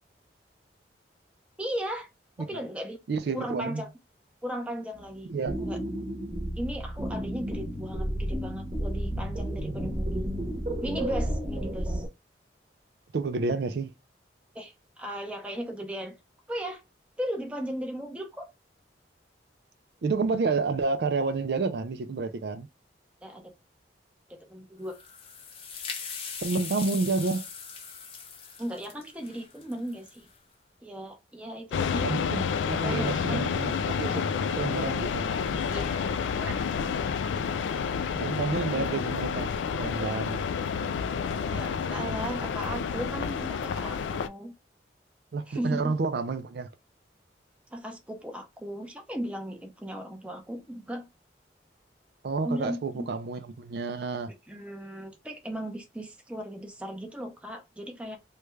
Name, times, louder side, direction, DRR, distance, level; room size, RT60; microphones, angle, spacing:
voice 1, 1.6-2.1 2.4-3.0 3.3-3.9 4.4-5.3 5.6-5.8 6.6-10.3 10.8-12.1 14.5-16.1 16.5-16.8 17.2-18.5 23.2-23.5 24.3-25.0 28.6-30.3 30.8-32.1 32.6-33.4 35.7-36.7 41.5-44.5 45.5-45.9 47.7-51.1 52.4-53.1 54.5-58.2, equal, 5° right, 0.7 m, -36 dB
voice 2, 3.1-3.8 5.3-5.6 13.1-13.9 20.0-22.7 26.4-27.4 32.0-34.2 34.5-35.3 38.2-40.4 45.3-46.7 52.2-54.3, right 4 dB, 65° right, 0.4 m, -29 dB
sound 1, 4.9-12.1, right 1 dB, 35° right, 1.0 m, -32 dB
sound 2, 24.8-30.4, left 5 dB, 30° left, 0.7 m, -40 dB
sound 3, 31.7-44.3, left 6 dB, 90° left, 0.3 m, -29 dB
3.2 x 2.3 x 3.2 m
head